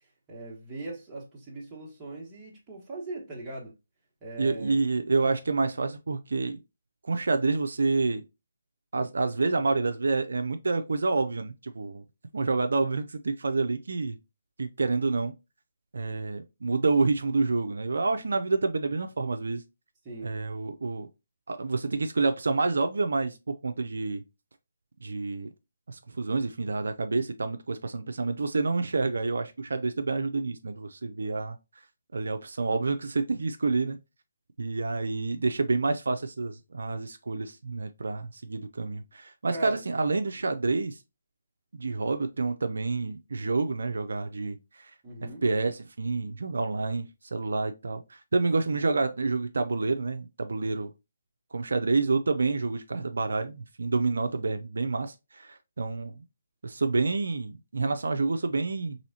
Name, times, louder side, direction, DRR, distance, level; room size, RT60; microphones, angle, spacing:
voice 1, 0.3-3.7 4.2-4.8 20.0-20.3 39.5-39.8 45.0-45.4, right 2 dB, 15° right, 1.3 m, -39 dB
voice 2, 4.4-6.6 7.0-8.2 8.9-12.0 12.3-14.2 14.6-15.3 15.9-19.6 20.2-21.1 21.5-24.2 25.0-25.5 25.9-31.6 32.1-34.0 34.6-41.0 41.7-44.9 45.4-50.9 51.5-56.2 56.6-59.0, right 3 dB, 75° right, 0.4 m, -28 dB
4.1 x 3.1 x 2.7 m
figure-of-eight pair, 155°, 0 cm